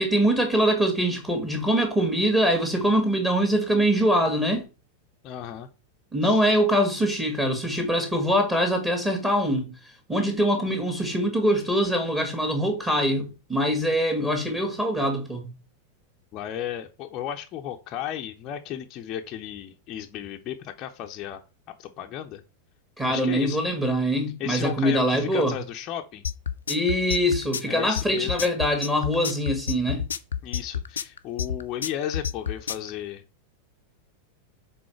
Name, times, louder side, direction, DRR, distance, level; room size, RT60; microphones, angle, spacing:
voice 1, 0.0-4.7 6.1-9.7 10.1-15.5 23.0-25.5 26.7-30.0, equal, 10° right, 1.9 m, -23 dB
voice 2, 5.2-5.7 6.2-6.4 16.3-21.4 21.8-22.4 23.0-23.6 24.4-26.2 27.7-28.5 30.4-33.2, left 10 dB, 35° left, 0.7 m, -34 dB
sound 1, 26.2-32.9, left 8 dB, 70° left, 0.5 m, -29 dB
6.2 x 3.9 x 4.5 m
figure-of-eight pair, 90°, 0 cm